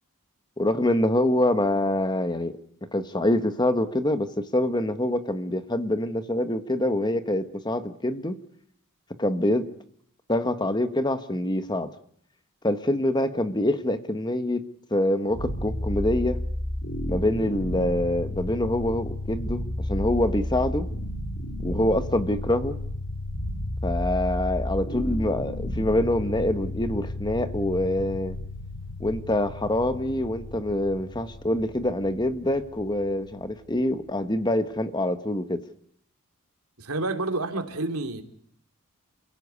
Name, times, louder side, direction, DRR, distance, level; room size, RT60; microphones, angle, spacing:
voice 1, 0.6-2.5 2.9-8.4 9.2-9.7 10.3-11.9 12.6-14.6 14.9-16.4 17.1-19.6 19.9-20.9 21.6-22.8 23.8-28.4 29.0-35.6, left 1 dB, 20° left, 10 dB, 1.3 m, -25 dB
sound 1, 15.3-34.3, left 1 dB, 70° left, 4.5 m, -33 dB
voice 2, 36.8-38.2, right 2 dB, 80° right, 6 dB, 3.2 m, -29 dB
29.0 x 16.5 x 8.3 m, 0.65 s
head